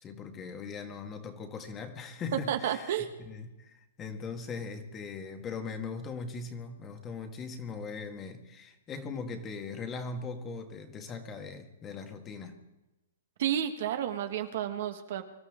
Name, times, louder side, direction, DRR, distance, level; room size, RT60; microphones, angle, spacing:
voice 1, 0.0-12.6, left 4 dB, 20° left, 5 dB, 1.8 m, -40 dB
voice 2, 2.5-3.1 13.4-15.2, right 10 dB, 60° right, 7 dB, 1.5 m, -31 dB
24.5 x 12.5 x 3.8 m, 1.0 s
hypercardioid pair, 140°, 0 cm